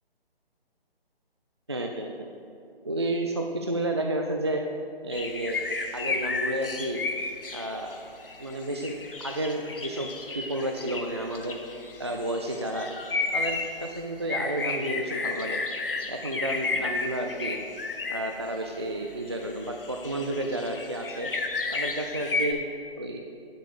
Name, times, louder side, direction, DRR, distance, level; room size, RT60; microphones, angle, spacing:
voice 1, 1.7-2.3 2.8-4.6 5.0-5.7 5.9-7.0 7.5-8.0 8.4-11.6 12.0-12.9 13.3-15.6 16.1-17.6 18.1-21.3 21.7-22.6 23.0-23.2, right 1 dB, 30° right, 2 dB, 0.4 m, -31 dB
sound 1, 5.1-18.7 19.0-22.5, left 3 dB, 60° left, 1.2 m, -33 dB
10.5 x 7.7 x 4.9 m, 2.7 s
figure-of-eight pair, 150°, 31 cm